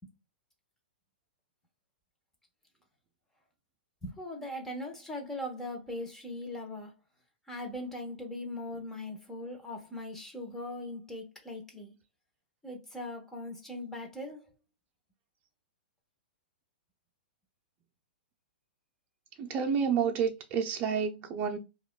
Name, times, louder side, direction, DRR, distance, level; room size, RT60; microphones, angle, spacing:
voice 1, 4.0-6.9 7.5-11.9 12.6-14.4, left 1 dB, 5° left, 1.1 m, -40 dB
voice 2, 19.4-21.6, right 6 dB, 30° right, 0.7 m, -29 dB
4.9 x 2.5 x 2.2 m
hypercardioid pair, 130°, 6 cm